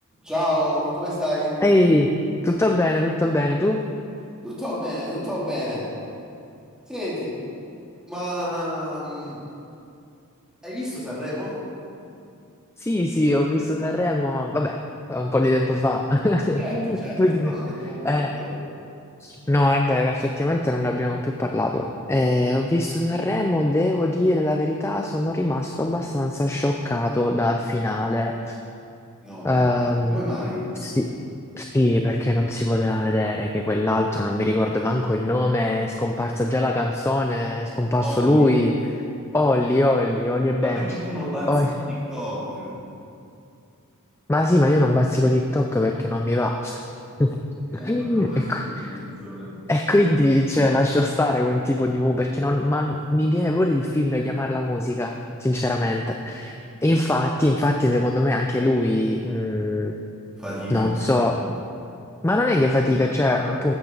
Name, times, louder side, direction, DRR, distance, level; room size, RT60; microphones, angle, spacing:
voice 1, 0.2-1.6 4.4-5.9 6.9-7.4 8.1-9.4 10.6-11.6 16.6-18.6 29.2-29.6 30.1-30.7 38.0-38.5 40.6-42.8 47.7-49.6 60.4-60.9, equal, 5° right, -8 dB, 2.9 m, -30 dB
voice 2, 1.6-2.1 2.4-3.8 12.8-14.8 15.1-17.5 18.0-18.3 19.2-21.8 22.1-28.6 29.4-30.2 30.8-31.1 31.5-39.0 39.3-40.9 41.5-41.7 44.3-46.8 47.2-47.4 47.7-49.0 49.7-59.9 60.7-61.4 62.2-63.7, left 1 dB, 10° left, 3 dB, 0.4 m, -22 dB
13.5 x 8.9 x 3.9 m, 2.6 s
head